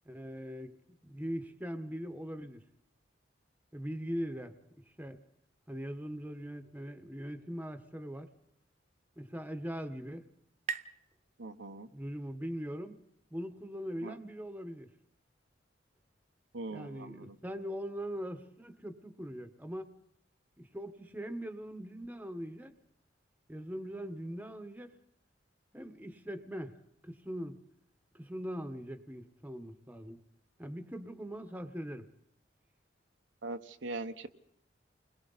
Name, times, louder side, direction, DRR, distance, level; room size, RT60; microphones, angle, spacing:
voice 1, 0.0-2.6 3.7-4.5 5.0-5.2 5.7-8.3 9.2-10.2 11.9-13.0 13.3-14.9 16.7-19.9 20.6-22.7 23.5-24.9 25.7-26.8 27.0-27.6 28.1-30.2 30.6-32.1, equal, 10° right, 8 dB, 1.2 m, -41 dB
sound 1, 9.2-12.6, right 6 dB, 40° right, 0.7 m, -46 dB
voice 2, 11.4-11.9 14.0-14.2 16.5-17.4 33.4-34.3, right 2 dB, 80° right, 7 dB, 1.1 m, -41 dB
29.5 x 21.5 x 4.1 m, 0.72 s
head